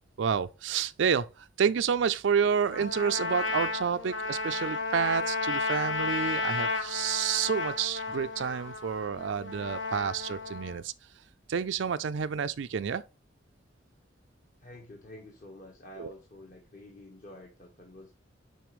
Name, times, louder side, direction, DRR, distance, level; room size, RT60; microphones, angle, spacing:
voice 1, 0.2-10.9 11.5-13.0 16.0-16.1, right 7 dB, 75° right, 0.4 m, -29 dB
Trumpet, 2.7-10.8, left 4 dB, 75° left, 1.2 m, -33 dB
voice 2, 14.6-18.1, left 1 dB, 45° left, 1.4 m, -49 dB
9.3 x 4.3 x 3.1 m
head